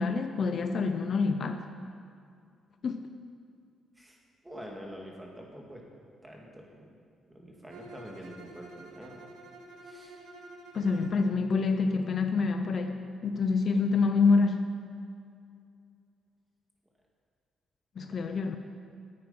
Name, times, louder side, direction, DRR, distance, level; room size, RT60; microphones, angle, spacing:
voice 1, 0.0-1.6 2.8-3.0 10.7-14.7 18.0-18.6, left 4 dB, 50° left, 7 dB, 0.6 m, -27 dB
voice 2, 4.4-5.8 6.2-6.9 7.3-9.3 9.8-10.2 18.1-18.2, equal, 10° right, -1 dB, 2.1 m, -46 dB
Bowed string instrument, 7.7-11.3, right 1 dB, 80° right, 1.1 m, -49 dB
9.7 x 8.8 x 5.7 m, 2.3 s
cardioid pair, 90°, 0 cm